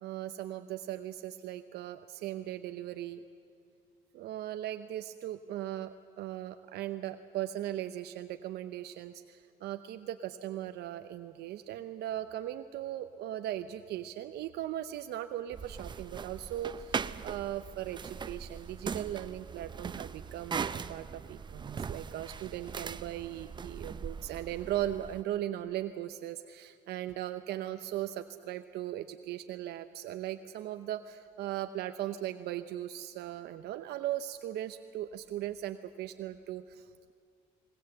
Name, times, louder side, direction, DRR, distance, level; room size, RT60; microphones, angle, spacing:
voice 1, 0.0-3.2 4.1-37.1, right 12 dB, 75° right, 9 dB, 0.8 m, -38 dB
sound 1, 15.5-25.2, right 6 dB, 25° right, 0.6 m, -40 dB
20.5 x 20.0 x 7.9 m, 2.2 s
cardioid pair, 110°, 17 cm